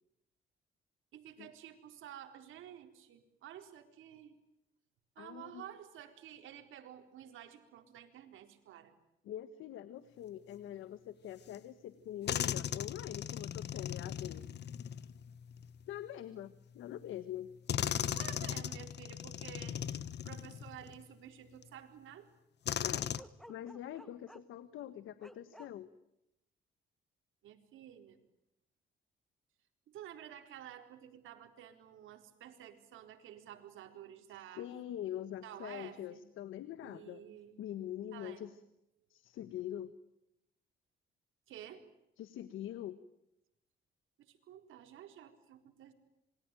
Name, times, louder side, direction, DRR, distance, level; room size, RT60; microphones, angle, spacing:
voice 1, 1.1-4.4 5.2-8.9 18.1-19.8 20.2-22.3 27.4-28.2 29.9-34.7 35.4-36.2 36.8-37.6 38.1-38.6 41.5-41.8 44.2-45.9, right 10 dB, 85° right, 5 dB, 4.2 m, -51 dB
voice 2, 5.2-5.7 9.2-14.5 15.9-17.5 22.8-23.1 23.5-25.9 34.6-37.2 37.6-38.5 39.1-39.9 42.2-43.0, left 11 dB, 85° left, 12 dB, 1.5 m, -44 dB
sound 1, 11.5-11.6 12.3-15.9 16.9-17.0 17.7-21.0 21.6-21.7 22.7-23.2, left 9 dB, 60° left, 1.2 m, -38 dB
Bark, 23.1-24.6 25.2-25.7, equal, ahead, 1.6 m, -54 dB
27.0 x 22.5 x 9.1 m, 0.84 s
cardioid pair, 90°, 20 cm